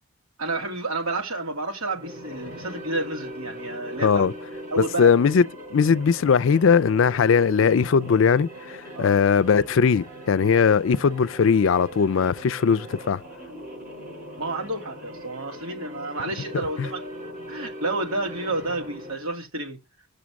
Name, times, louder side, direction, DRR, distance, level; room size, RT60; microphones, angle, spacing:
voice 1, 0.4-4.3 4.7-5.1 8.9-9.1 14.4-17.0 17.5-19.8, right 2 dB, 85° right, 2.3 m, -30 dB
sound 1, 1.8-19.3, equal, 40° right, 4.9 m, -40 dB
voice 2, 4.0-4.3 4.8-5.4 5.7-13.2 16.8-16.9, left 6 dB, 70° left, 0.4 m, -19 dB
6.7 x 6.3 x 7.0 m
head